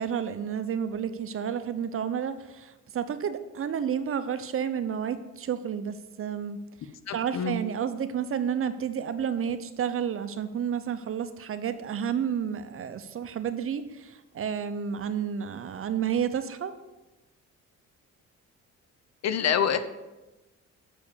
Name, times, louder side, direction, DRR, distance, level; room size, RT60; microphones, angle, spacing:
voice 1, 0.0-16.7, right 8 dB, 45° right, 11 dB, 0.7 m, -31 dB
voice 2, 7.1-7.6 19.2-19.8, left 8 dB, 60° left, 11 dB, 0.7 m, -26 dB
6.5 x 5.0 x 6.9 m, 1.1 s
cardioid pair, 90°, 30 cm